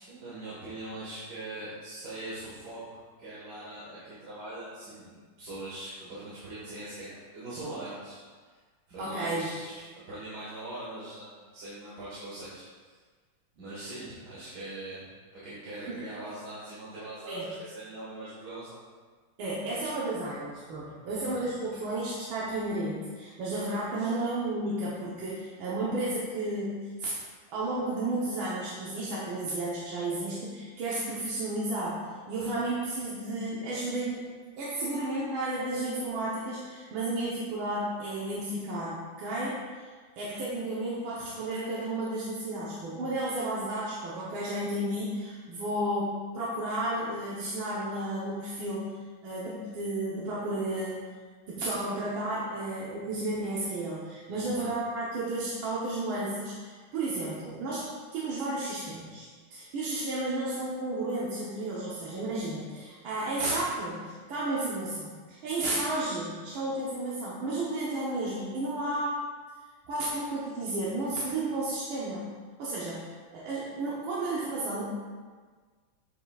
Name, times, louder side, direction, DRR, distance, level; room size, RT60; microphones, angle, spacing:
voice 1, 0.0-8.2 8.9-12.9 13.6-15.0 15.4-18.8 21.1-21.4 24.0-24.2 54.3-54.7, right 2 dB, 55° right, -10 dB, 2.1 m, -42 dB
voice 2, 9.0-9.5 15.9-16.0 17.3-17.5 19.4-27.1 27.5-34.2 34.6-39.9 40.2-48.9 49.2-51.0 51.5-69.2 69.9-72.3 72.6-74.8, right 2 dB, 80° right, -7 dB, 1.8 m, -32 dB
7.6 x 6.9 x 2.4 m, 1.5 s
omnidirectional pair, 2.2 m